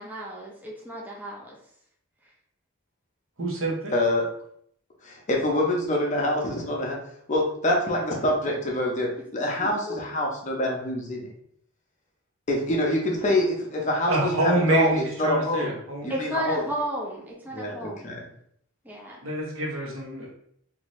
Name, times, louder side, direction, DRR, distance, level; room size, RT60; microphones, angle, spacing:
voice 1, 0.0-1.5 9.6-10.0 16.1-18.2 18.8-19.2, right 1 dB, 10° right, -3 dB, 0.5 m, -34 dB
voice 2, 3.4-3.9 14.1-16.1 19.2-20.3, right 2 dB, 70° right, -2 dB, 1.0 m, -27 dB
voice 3, 3.9-4.2 5.0-7.0 7.3-11.3 12.5-14.9 15.2-15.7 16.0-16.6 17.5-18.2, left 1 dB, 35° left, -1 dB, 0.6 m, -25 dB
2.7 x 2.6 x 3.0 m, 0.66 s
head